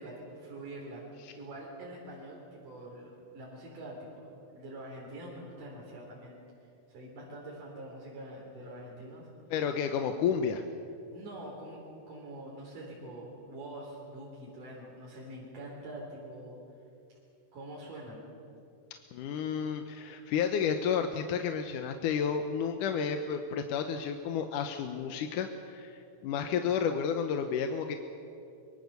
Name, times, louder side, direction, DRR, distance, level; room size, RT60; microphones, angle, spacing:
voice 1, 0.0-4.3 4.5-6.4 6.9-9.3 11.1-16.6 17.5-18.3, right 1 dB, 90° right, -4 dB, 5.3 m, -45 dB
voice 2, 9.5-10.6 19.1-28.0, left 7 dB, 80° left, 6 dB, 2.5 m, -31 dB
25.0 x 23.0 x 6.9 m, 2.7 s
omnidirectional pair, 3.6 m